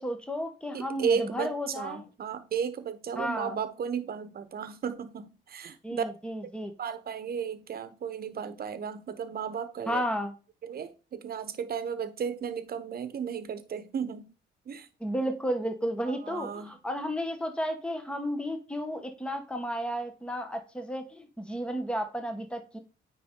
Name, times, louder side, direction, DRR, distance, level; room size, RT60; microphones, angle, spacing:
voice 1, 0.0-2.0 3.2-3.6 5.8-6.7 9.9-10.3 15.0-22.8, equal, 5° left, 1.1 m, -33 dB
voice 2, 0.7-6.1 6.8-10.0 10.6-14.3 14.7-14.9 16.0-16.7, right 7 dB, 50° right, 1.0 m, -34 dB
9.3 x 3.9 x 3.8 m
cardioid pair, 90°, 20 cm